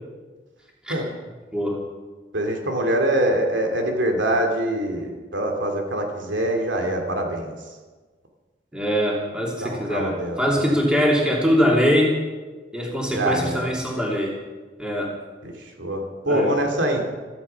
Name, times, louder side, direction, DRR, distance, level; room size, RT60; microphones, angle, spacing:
voice 1, 2.3-7.5 9.6-10.6 13.1-13.7 15.4-15.5 15.8-17.0, right 1 dB, 80° right, 3 dB, 2.6 m, -24 dB
voice 2, 8.7-12.2 12.7-14.3 14.8-15.1 16.2-16.5, equal, 5° right, -3 dB, 3.0 m, -22 dB
16.0 x 14.0 x 5.7 m, 1.3 s
head